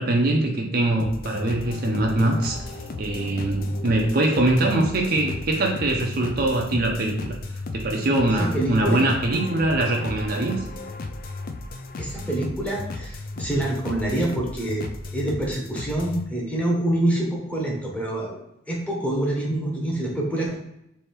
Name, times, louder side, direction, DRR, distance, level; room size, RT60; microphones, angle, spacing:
voice 1, 0.0-2.6 3.0-7.4 7.7-10.6, right 2 dB, 50° right, 1 dB, 0.6 m, -22 dB
sound 1, 1.0-16.2, left 3 dB, 50° left, 0.4 m, -35 dB
voice 2, 8.3-9.0 12.0-14.9 15.1-18.4 18.7-20.6, right 1 dB, 5° left, -3 dB, 1.0 m, -26 dB
3.4 x 2.7 x 4.3 m, 0.83 s
head